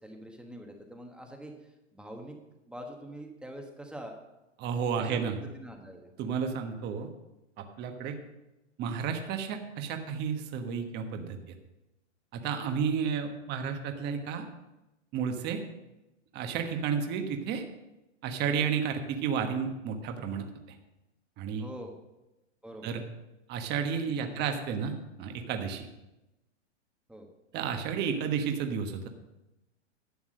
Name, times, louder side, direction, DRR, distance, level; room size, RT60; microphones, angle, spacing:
voice 1, 0.0-2.4 2.7-4.1 5.0-6.1 21.6-21.9 22.6-22.9 24.2-24.3 24.9-25.0 27.1-27.3, equal, 5° right, 2 dB, 1.2 m, -45 dB
voice 2, 4.6-5.3 6.2-7.1 7.6-8.1 8.8-11.5 12.3-14.5 15.1-15.6 16.3-17.6 18.2-20.4 21.4-21.7 22.8-23.0 23.5-24.9 25.2-25.9 27.5-29.1, right 6 dB, 30° right, 5 dB, 1.2 m, -32 dB
11.5 x 7.2 x 6.4 m, 0.97 s
hypercardioid pair, 135°, 36 cm